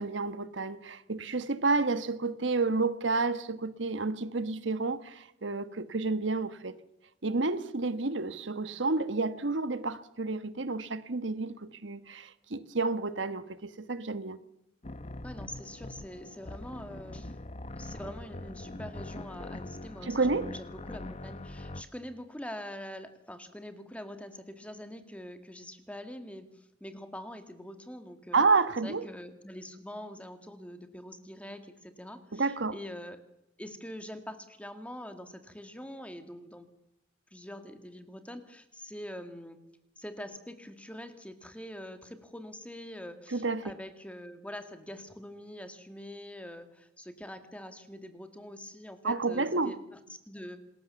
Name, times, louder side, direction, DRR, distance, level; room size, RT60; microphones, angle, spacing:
voice 1, 0.0-6.8 7.2-14.4 20.0-20.5 28.3-29.1 32.3-32.7 43.3-43.7 49.0-49.8, right 3 dB, 90° right, 1.3 m, -30 dB
sound 1, 14.8-21.8, left 2 dB, 35° left, 1.0 m, -42 dB
voice 2, 15.2-17.4 17.8-28.4 28.8-33.2 33.6-36.7 37.3-39.6 40.0-50.6, left 1 dB, 5° left, 2.0 m, -44 dB
27.0 x 20.5 x 7.0 m
head